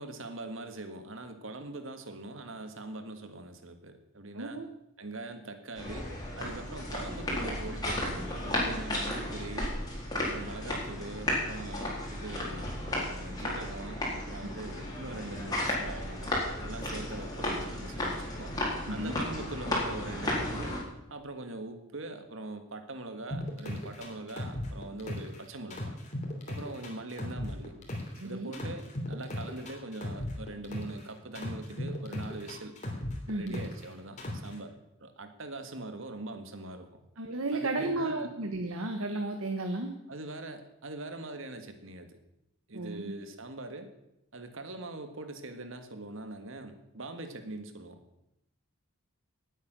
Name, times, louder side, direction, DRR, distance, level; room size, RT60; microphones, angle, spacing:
voice 1, 0.0-4.6 5.0-9.7 10.2-18.6 18.9-20.7 21.1-26.0 26.5-27.8 28.2-32.8 33.3-37.0 37.5-38.3 40.1-42.2 42.7-43.9 44.3-48.0, right 2 dB, 65° right, 7 dB, 1.7 m, -42 dB
voice 2, 4.3-4.7 14.4-14.5 18.9-19.1 28.2-28.5 33.3-33.6 37.2-39.9 42.7-43.1, right 2 dB, 80° right, 5 dB, 1.4 m, -33 dB
sound 1, 5.8-20.8, left 1 dB, 20° left, 4.2 m, -34 dB
sound 2, 23.3-25.4 25.7-28.2 28.5-31.0 31.3-33.9 34.2-34.5, left 1 dB, 35° left, 2.9 m, -37 dB
18.5 x 8.7 x 6.3 m, 0.85 s
head